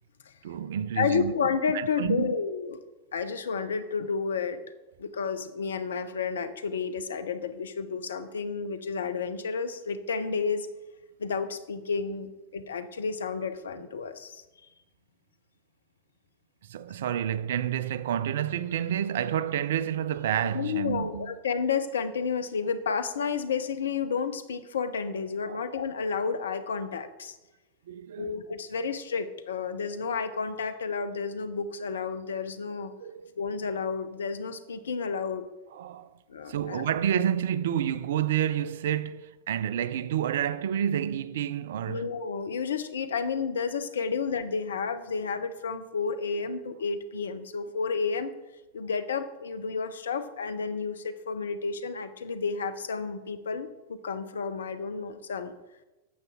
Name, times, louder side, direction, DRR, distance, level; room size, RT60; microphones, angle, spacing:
voice 1, 0.4-1.4 1.7-2.3 16.6-21.3 25.4-25.6 27.9-28.4 33.0-33.3 35.7-36.2 36.5-42.1, right 10 dB, 60° right, 0.4 m, -29 dB
voice 2, 1.0-2.8 3.1-4.6 5.0-10.7 11.2-14.4 20.5-27.4 28.2-32.9 33.4-35.5 36.3-36.9 41.9-48.3 48.7-55.5, left 5 dB, 65° left, 0.6 m, -31 dB
9.4 x 6.7 x 3.7 m
figure-of-eight pair, 90°, 0 cm